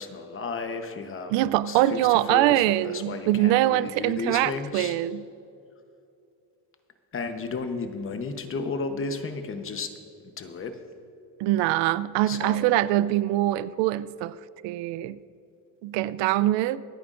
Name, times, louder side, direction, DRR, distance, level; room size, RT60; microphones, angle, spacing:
voice 1, 0.0-1.3 1.7-5.0 7.1-9.9 10.4-10.8 12.3-12.7, left 4 dB, 30° left, 7 dB, 0.9 m, -33 dB
voice 2, 1.3-5.2 11.4-14.3 14.6-15.2 15.8-16.8, right 15 dB, 85° right, 17 dB, 0.5 m, -23 dB
25.5 x 9.4 x 2.5 m, 2.6 s
cardioid pair, 140°, 42 cm